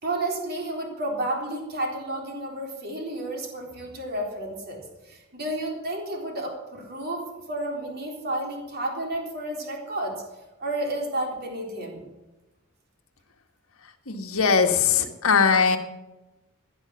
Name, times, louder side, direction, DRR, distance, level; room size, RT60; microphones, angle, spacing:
voice 1, 0.0-10.2 10.6-12.0, right 1 dB, 45° right, 1 dB, 3.7 m, -31 dB
voice 2, 14.1-15.8, left 5 dB, 65° left, 4 dB, 1.7 m, -20 dB
16.5 x 10.0 x 7.1 m, 1.0 s
head